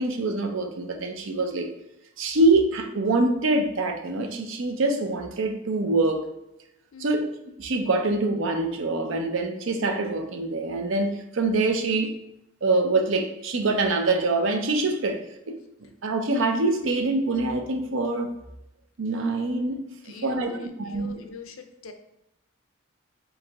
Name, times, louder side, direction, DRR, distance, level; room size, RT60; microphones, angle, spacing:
voice 1, 0.0-1.7 2.2-6.3 7.0-7.2 7.6-12.1 12.6-15.6 16.0-18.4 19.0-19.8 20.2-21.1, right 2 dB, 75° right, 5 dB, 0.6 m, -25 dB
voice 2, 6.9-7.3 20.0-21.9, left 4 dB, 85° left, 6 dB, 0.5 m, -43 dB
4.7 x 2.6 x 3.4 m, 0.87 s
head